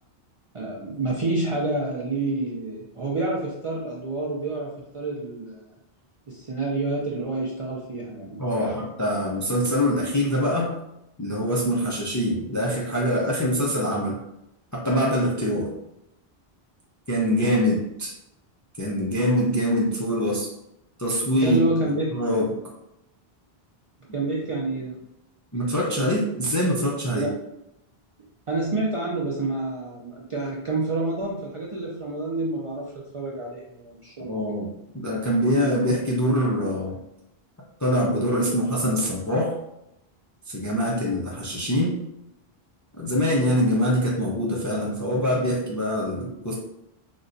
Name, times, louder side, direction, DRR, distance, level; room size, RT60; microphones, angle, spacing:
voice 1, 0.5-5.6 6.3-8.9 21.3-22.1 24.1-25.0 27.1-27.3 28.5-34.6, right 2 dB, 50° right, -4 dB, 0.4 m, -28 dB
voice 2, 8.4-10.7 11.2-14.2 14.7-15.7 17.1-18.1 18.8-20.5 21.0-21.6 22.1-22.6 25.5-27.3 34.2-34.7 34.9-37.0 37.8-39.5 40.5-42.0 43.0-46.5, equal, 30° left, -4 dB, 0.3 m, -24 dB
3.9 x 2.1 x 2.5 m, 0.83 s
omnidirectional pair, 1.1 m